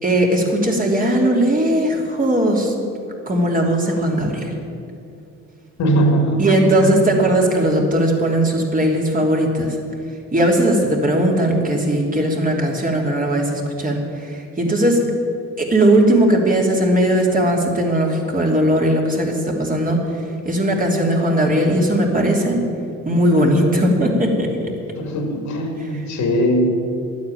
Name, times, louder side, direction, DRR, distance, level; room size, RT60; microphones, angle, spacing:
voice 1, 0.0-2.7 3.3-4.5 6.4-9.8 10.3-15.0 15.6-20.0 20.4-22.6 23.0-24.5, right 1 dB, 25° right, 0 dB, 3.0 m, -18 dB
voice 2, 5.8-6.4 6.8-7.0 25.0-26.7, right 1 dB, 70° left, 3 dB, 2.5 m, -19 dB
12.0 x 9.4 x 9.2 m, 2.5 s
cardioid pair, 90°, 30 cm